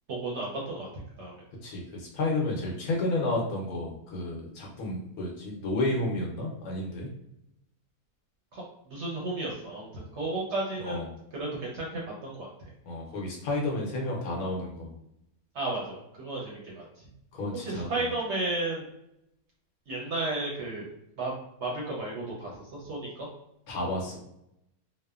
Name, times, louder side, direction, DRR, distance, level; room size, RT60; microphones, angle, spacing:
voice 1, 0.1-1.3 8.5-11.0 11.3-12.5 15.5-16.8 17.5-18.8 19.9-20.9 21.2-23.3, right 2 dB, 60° right, -4 dB, 0.8 m, -33 dB
voice 2, 1.6-7.1 10.8-11.1 12.8-14.9 17.4-18.0 23.7-24.2, left 2 dB, 70° left, -1 dB, 1.1 m, -31 dB
2.9 x 2.1 x 2.3 m, 0.82 s
omnidirectional pair, 1.6 m